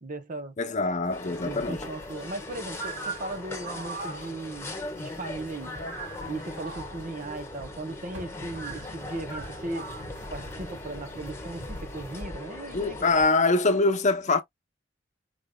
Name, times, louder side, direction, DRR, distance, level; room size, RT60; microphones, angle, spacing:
voice 1, 0.0-0.5 1.4-4.7 5.0-5.7 6.3-9.9 10.3-13.1, right 2 dB, 45° right, 0.8 m, -37 dB
voice 2, 0.6-1.9 12.7-14.4, left 3 dB, 40° left, 0.8 m, -24 dB
sound 1, 1.0-12.2, right 2 dB, 75° right, 3.2 m, -42 dB
sound 2, 1.1-13.3, left 2 dB, 15° left, 1.4 m, -40 dB
5.1 x 3.4 x 2.3 m
head